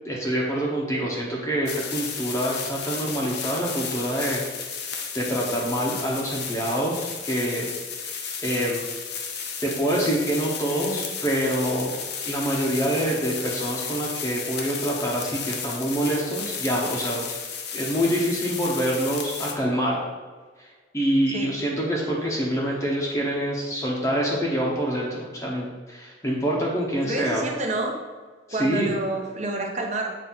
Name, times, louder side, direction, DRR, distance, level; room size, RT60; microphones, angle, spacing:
voice 1, 0.0-4.4 5.1-8.1 8.4-8.9 9.6-11.9 12.3-17.3 17.7-20.0 20.6-20.7 20.9-27.5 28.5-28.9, equal, 15° left, -4 dB, 0.9 m, -26 dB
sound 1, 1.7-19.5, left 6 dB, 60° left, 0.7 m, -33 dB
voice 2, 27.0-27.9 28.5-30.1, right 2 dB, 40° right, 0 dB, 1.0 m, -28 dB
7.3 x 2.6 x 5.7 m, 1.4 s
head